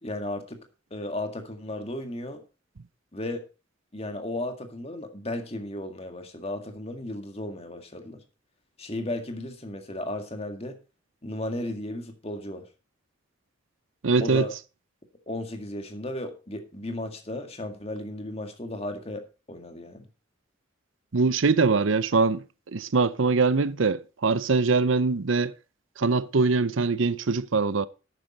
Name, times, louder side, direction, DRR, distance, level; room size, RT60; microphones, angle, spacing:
voice 1, 0.0-0.6 0.9-2.4 3.1-3.4 3.9-8.2 8.8-10.8 11.2-12.6 14.2-14.5 15.3-20.1, left 1 dB, 30° left, 2.0 m, -34 dB
voice 2, 14.0-14.5 21.1-22.4 22.7-25.5 26.0-27.9, right 4 dB, 80° right, 0.7 m, -23 dB
12.0 x 9.4 x 4.1 m
head